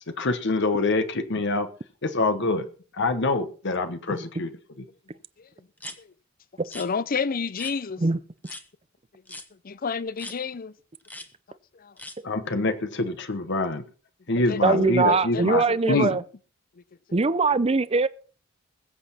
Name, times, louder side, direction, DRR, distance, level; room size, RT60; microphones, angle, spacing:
voice 1, 0.2-1.7 2.0-2.7 3.0-4.5 12.2-13.8 14.3-16.2, left 3 dB, 60° left, 1.2 m, -25 dB
sound 1, 5.8-6.0 6.6-6.9 7.6-7.8 8.4-8.6 9.3-9.5 10.2-10.4 11.0-11.3 12.0-12.2, left 2 dB, 10° left, 1.2 m, -40 dB
voice 2, 6.7-8.0 9.6-10.7 11.8-11.9 14.3-16.2, left 5 dB, 45° left, 0.6 m, -30 dB
voice 3, 14.6-16.2 17.1-18.1, right 3 dB, 30° right, 0.6 m, -22 dB
20.5 x 8.1 x 4.3 m
head